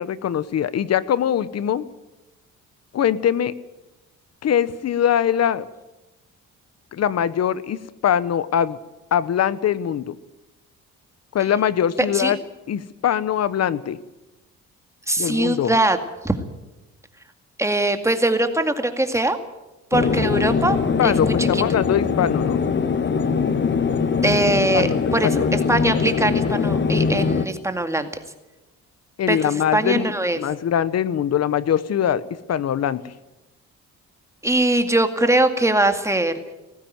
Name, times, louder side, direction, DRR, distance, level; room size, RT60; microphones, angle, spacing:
voice 1, 0.0-1.8 2.9-3.6 4.4-5.7 6.9-8.8 9.1-10.2 11.3-12.4 12.7-14.0 15.2-15.7 21.0-22.6 24.7-25.0 25.2-25.5 29.2-32.2 32.5-33.1, left 9 dB, 55° left, 17 dB, 1.0 m, -22 dB
voice 2, 15.1-16.0 16.2-16.3 17.6-19.4 19.9-20.8 21.0-21.6 24.2-25.4 25.7-28.1 29.3-29.4 29.7-30.4 34.4-36.3, right 1 dB, 10° right, 7 dB, 2.2 m, -21 dB
sound 1, 19.9-27.5, left 5 dB, 40° left, 1.4 m, -22 dB
18.5 x 15.0 x 9.3 m, 1.0 s
cardioid pair, 90°, 30 cm